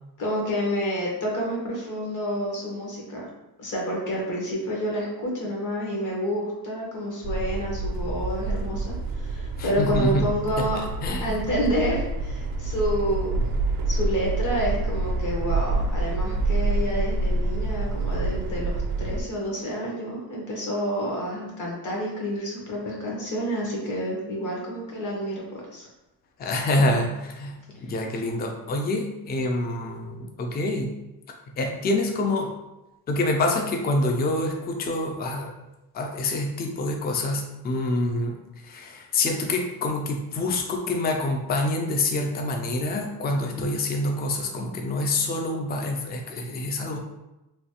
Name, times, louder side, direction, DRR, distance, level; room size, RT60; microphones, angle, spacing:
voice 1, 0.2-3.3 3.6-10.8 11.2-13.4 13.9-25.9 27.9-28.0, equal, 50° left, -3 dB, 1.1 m, -29 dB
sound 1, 7.2-19.2, right 2 dB, 60° right, 0.5 m, -27 dB
voice 2, 9.6-10.3 10.6-10.7 11.0-11.3 26.4-30.9 31.6-32.5 33.1-35.5 35.9-38.4 38.6-47.0, left 2 dB, 25° left, 2 dB, 0.4 m, -26 dB
3.1 x 2.3 x 2.8 m, 0.98 s
cardioid pair, 120°, 40 cm